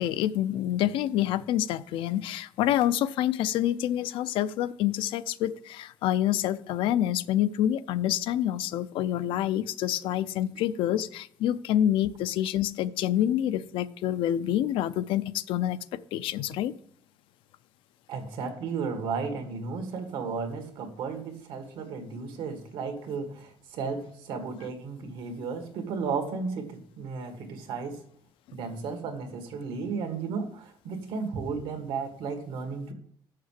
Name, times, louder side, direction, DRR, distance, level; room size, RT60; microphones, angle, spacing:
voice 1, 0.0-16.7, left 12 dB, 90° left, 15 dB, 0.5 m, -27 dB
voice 2, 18.1-28.0 28.5-32.9, right 5 dB, 90° right, 6 dB, 1.8 m, -34 dB
6.6 x 6.5 x 7.4 m, 0.64 s
cardioid pair, 150°, 9 cm